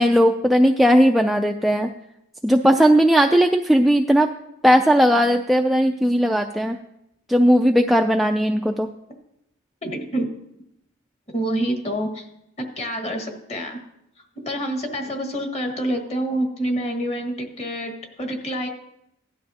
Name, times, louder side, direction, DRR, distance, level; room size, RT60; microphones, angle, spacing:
voice 1, 0.0-1.9 2.4-4.3 4.6-6.8 7.3-8.9, equal, ahead, 3 dB, 0.3 m, -17 dB
voice 2, 9.8-10.3 11.3-12.3 12.6-13.8 14.4-18.7, right 1 dB, 30° left, 2 dB, 1.7 m, -27 dB
17.0 x 11.5 x 2.8 m, 0.83 s
head